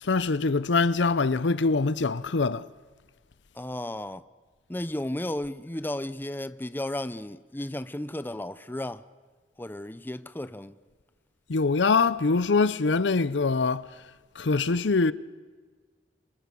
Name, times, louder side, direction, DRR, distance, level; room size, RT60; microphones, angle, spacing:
voice 1, 0.0-2.7 11.5-13.9 14.4-15.1, left 4 dB, 75° left, 0.7 m, -24 dB
voice 2, 3.5-4.2 4.7-9.0 9.6-10.7, left 1 dB, 10° left, 0.7 m, -34 dB
26.0 x 26.0 x 6.9 m
head